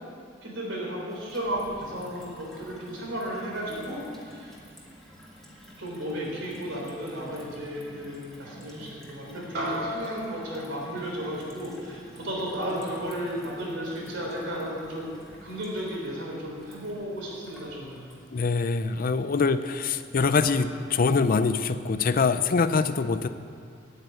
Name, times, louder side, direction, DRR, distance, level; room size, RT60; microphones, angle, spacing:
voice 1, 0.4-4.5 5.8-15.1 15.4-18.0, equal, 75° right, -2 dB, 3.6 m, -34 dB
Gurgling / Water tap faucet / Sink (filling or washing), 1.1-21.0, equal, ahead, 1.9 m, -50 dB
sound 1, 9.5-14.2, equal, 60° right, 3.4 m, -38 dB
voice 2, 18.3-23.3, left 4 dB, 45° left, 12 dB, 0.5 m, -24 dB
9.0 x 8.9 x 9.0 m, 2.4 s
head